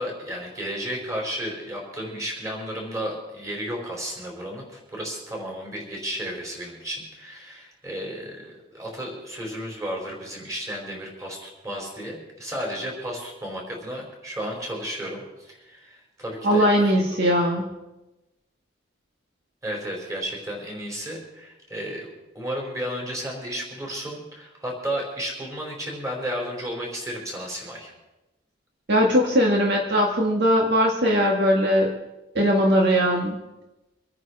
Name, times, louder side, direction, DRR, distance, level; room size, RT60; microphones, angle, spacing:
voice 1, 0.0-17.0 19.6-27.9, equal, 15° right, -1 dB, 4.8 m, -33 dB
voice 2, 16.4-17.6 28.9-31.9 32.4-33.4, equal, 55° right, -1 dB, 1.9 m, -20 dB
25.5 x 9.9 x 4.8 m, 1.0 s
head